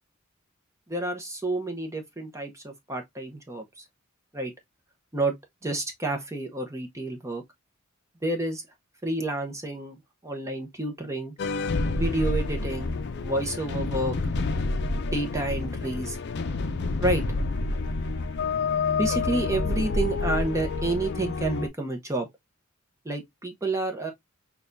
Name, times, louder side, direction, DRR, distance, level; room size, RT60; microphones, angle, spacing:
voice 1, 0.9-3.9 4.3-4.5 5.1-5.3 5.6-7.4 8.2-8.6 9.0-10.0 10.2-11.3 11.9-13.0 13.2-14.1 15.1-16.2 17.0-17.2 19.0-22.3 23.0-24.1, right 2 dB, 15° right, 0.7 m, -29 dB
sound 1, 11.4-21.7, left 3 dB, 50° left, 0.5 m, -28 dB
6.3 x 2.3 x 2.5 m
head